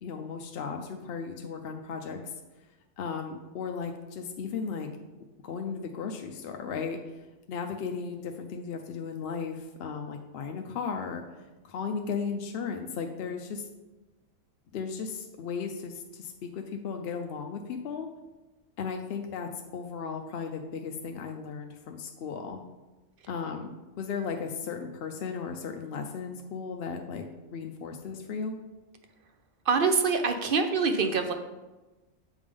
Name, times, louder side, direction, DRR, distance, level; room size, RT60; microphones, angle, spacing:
voice 1, 0.0-2.3 3.0-4.9 5.4-7.0 7.5-11.2 11.6-13.6 14.7-18.1 18.8-22.6 23.3-28.6, left 5 dB, 65° left, 4 dB, 0.6 m, -35 dB
voice 2, 29.7-31.3, right 4 dB, 60° right, 6 dB, 0.6 m, -25 dB
7.3 x 3.5 x 5.2 m, 1.1 s
omnidirectional pair, 1.4 m